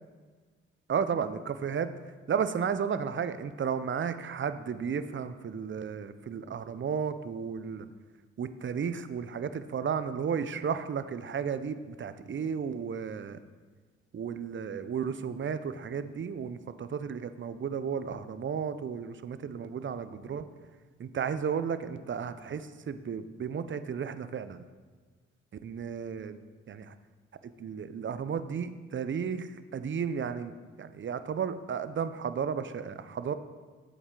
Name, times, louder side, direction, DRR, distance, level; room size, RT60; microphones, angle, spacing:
voice 1, 0.9-1.9 2.3-7.9 8.4-13.4 14.1-20.4 21.0-24.6 25.6-26.4 26.7-26.9 27.4-33.3, right 7 dB, 40° right, 12 dB, 0.6 m, -33 dB
8.0 x 7.1 x 3.8 m, 1.4 s
hypercardioid pair, 40°, 31 cm